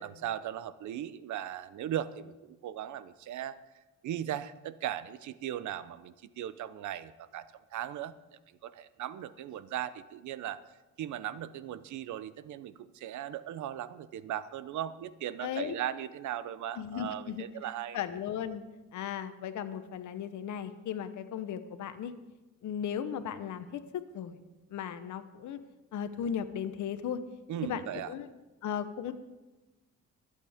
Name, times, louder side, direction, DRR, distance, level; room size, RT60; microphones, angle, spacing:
voice 1, 0.0-3.6 4.0-7.5 7.7-8.1 8.6-10.6 11.0-18.0 27.5-28.1, right 11 dB, 75° right, 15 dB, 0.7 m, -38 dB
voice 2, 15.4-15.7 16.8-17.5 17.9-18.6 18.9-22.1 22.6-24.4 24.7-25.6 25.9-27.2 27.6-28.3 28.6-29.1, left 8 dB, 75° left, 10 dB, 1.0 m, -36 dB
24.5 x 8.4 x 3.6 m, 1.1 s
cardioid pair, 90°, 30 cm